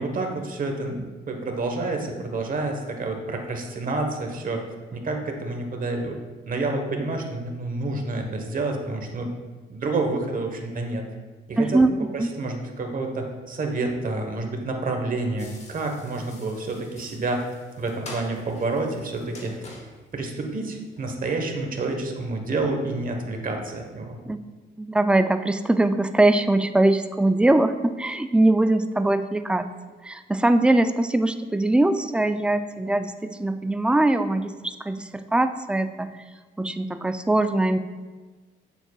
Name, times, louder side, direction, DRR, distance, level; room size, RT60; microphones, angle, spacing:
voice 1, 0.0-4.6 4.9-6.2 6.5-9.3 9.7-11.0 11.5-11.8 12.1-17.5 17.8-19.5 20.1-24.2, right 2 dB, 45° right, 3 dB, 1.2 m, -29 dB
voice 2, 11.6-11.9 12.2-12.3 24.3-24.4 24.8-29.7 30.0-36.2 36.6-37.8, right 2 dB, 5° right, 9 dB, 0.3 m, -22 dB
sound 1, 15.4-21.1, left 2 dB, 35° left, 1.4 m, -45 dB
7.9 x 7.2 x 2.4 m, 1.3 s
cardioid pair, 90°, 20 cm